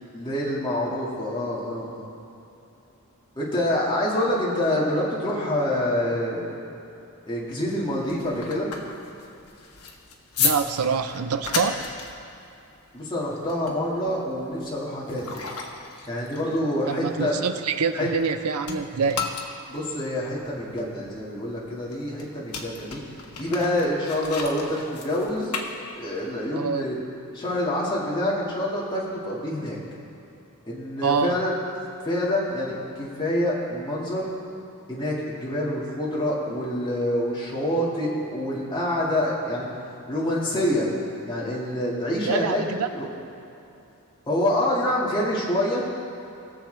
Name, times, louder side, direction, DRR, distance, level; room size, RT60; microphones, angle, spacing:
voice 1, 0.1-2.1 3.4-6.6 7.3-8.7 12.9-15.4 16.1-17.4 18.0-18.1 19.7-23.0 23.4-25.5 26.0-27.0 27.3-29.8 30.7-31.5 32.0-34.3 34.9-39.6 40.1-40.9 41.3-42.6 42.9-43.1 44.3-45.8, left 1 dB, 20° left, -6 dB, 2.1 m, -26 dB
sound 1, 7.8-18.3 18.6-26.3, left 5 dB, 85° left, 1.2 m, -34 dB
voice 2, 10.4-11.8 16.9-19.3 26.5-26.9 31.0-31.4 42.3-42.9, right 5 dB, 80° right, 9 dB, 0.6 m, -25 dB
21.0 x 7.2 x 3.4 m, 2.8 s
head